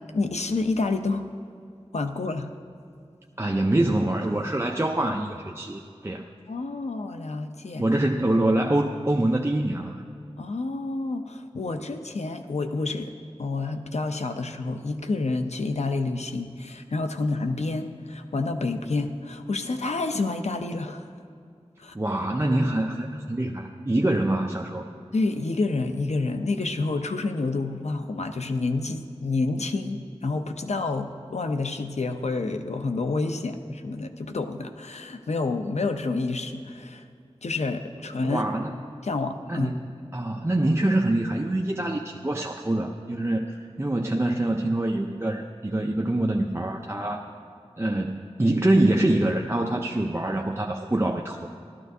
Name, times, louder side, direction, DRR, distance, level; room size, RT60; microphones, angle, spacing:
voice 1, 0.1-1.2 1.9-2.5 6.5-7.8 10.4-13.1 13.4-21.1 21.8-21.9 25.1-37.0 37.4-38.4 39.0-39.7, left 3 dB, 85° left, 7 dB, 0.6 m, -28 dB
voice 2, 3.4-6.2 7.8-10.0 21.9-24.9 38.2-38.8 39.5-47.2 47.8-51.5, right 1 dB, 25° right, 1 dB, 0.5 m, -25 dB
15.0 x 12.5 x 2.7 m, 2.4 s
wide cardioid pair, 55°, 11 cm